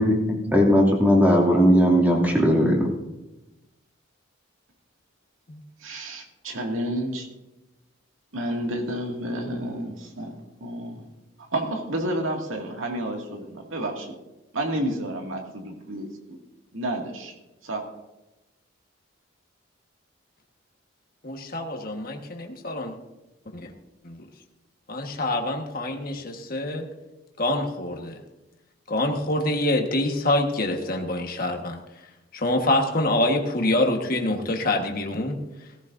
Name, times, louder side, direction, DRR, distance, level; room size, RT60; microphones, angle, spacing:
voice 1, 0.0-2.9, equal, 10° right, -1 dB, 2.6 m, -18 dB
voice 2, 5.8-7.3 8.3-10.3 10.6-11.0 11.5-14.1 14.5-16.4 16.7-17.3 17.6-17.8, right 1 dB, 80° right, 1 dB, 2.2 m, -30 dB
voice 3, 21.2-23.0 23.5-23.6 24.0-24.3 24.9-26.8 27.4-28.2 28.9-31.8 32.3-35.4, left 1 dB, 45° left, 2 dB, 1.5 m, -26 dB
17.5 x 14.5 x 2.7 m, 1.0 s
head